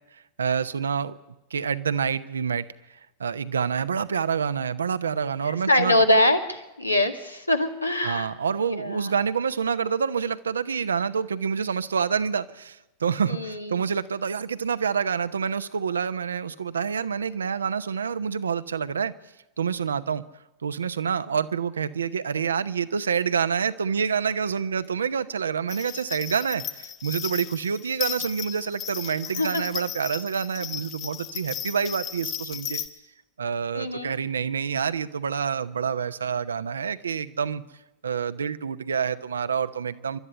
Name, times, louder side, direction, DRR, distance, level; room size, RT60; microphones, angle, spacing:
voice 1, 0.1-1.2 1.5-2.6 3.2-6.0 8.0-19.1 19.6-20.2 20.6-32.8 33.4-37.6 38.0-40.2, right 6 dB, 70° right, 12 dB, 0.9 m, -27 dB
voice 2, 5.4-8.3 8.7-9.1 13.3-13.8 29.4-29.6 33.7-34.1, left 1 dB, 85° left, 5 dB, 1.8 m, -23 dB
sound 1, 25.7-32.9, left 9 dB, 40° left, 1.6 m, -35 dB
28.5 x 12.5 x 9.9 m, 1.0 s
figure-of-eight pair, 90°, 0 cm